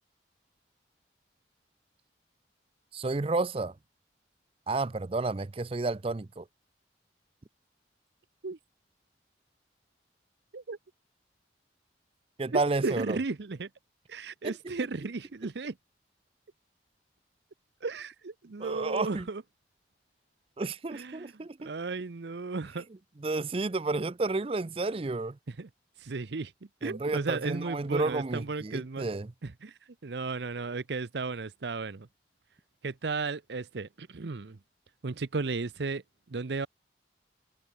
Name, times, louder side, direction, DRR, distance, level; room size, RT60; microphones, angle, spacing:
voice 1, 2.9-3.7 4.7-6.5 12.4-13.2 14.4-14.5 18.6-19.3 20.6-21.7 23.2-25.4 26.8-29.3, right 3 dB, 30° right, 0.5 m, -31 dB
voice 2, 12.5-13.7 14.1-15.7 17.8-19.4 20.9-22.9 25.5-25.7 26.0-26.5 26.8-29.0 29.4-32.1 32.8-34.6 35.0-36.0 36.3-36.7, right 3 dB, 75° right, 0.7 m, -35 dB
head